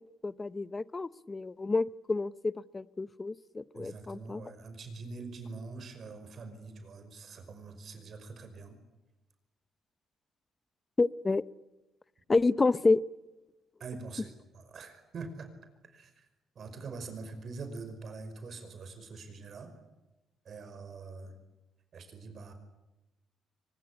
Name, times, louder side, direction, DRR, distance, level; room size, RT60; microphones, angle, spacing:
voice 1, 0.2-4.4 11.0-11.4 12.3-13.0, left 3 dB, 25° left, 17 dB, 0.8 m, -29 dB
voice 2, 3.7-8.8 13.8-15.5 15.9-16.3 16.6-19.7 20.5-21.3 21.9-22.5, right 4 dB, 55° right, 9 dB, 5.3 m, -44 dB
24.0 x 20.5 x 9.9 m, 1.0 s
cardioid pair, 90°, 0 cm